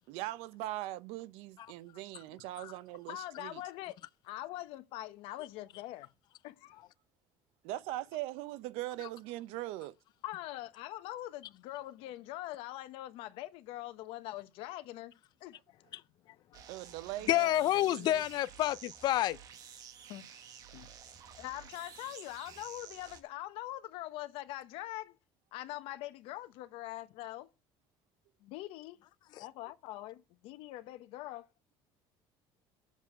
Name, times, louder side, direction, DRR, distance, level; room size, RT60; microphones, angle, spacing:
voice 1, 0.1-3.6 7.6-10.0 16.7-18.2, right 16 dB, 90° right, 0.7 m, -41 dB
voice 2, 3.1-3.9 4.2-6.1 6.4-6.8 10.2-15.6 20.1-20.4 20.7-20.9 21.4-25.2 25.5-27.5 28.4-29.0 29.4-31.5, left 15 dB, 75° left, 1.1 m, -43 dB
sound 1, 16.5-23.2, right 8 dB, 40° right, 1.3 m, -52 dB
voice 3, 17.3-19.4 29.4-29.5, left 14 dB, 45° left, 0.5 m, -29 dB
7.3 x 6.9 x 7.2 m
cardioid pair, 165°, 10 cm